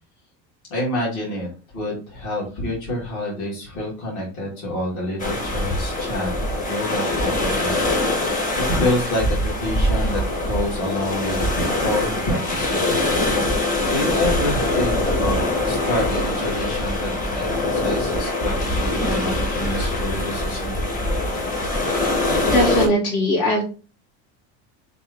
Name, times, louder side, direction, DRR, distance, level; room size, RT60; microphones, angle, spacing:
voice 1, 0.7-6.3 6.6-7.8 8.2-13.0 13.9-15.4 15.6-20.8, left 1 dB, 60° left, -4 dB, 1.9 m, -27 dB
sound 1, 5.2-22.9, left 1 dB, 25° left, 0.9 m, -23 dB
voice 2, 22.5-23.6, left 1 dB, 80° left, -4 dB, 2.0 m, -19 dB
3.4 x 2.6 x 3.3 m, 0.36 s
supercardioid pair, 120°, 35 cm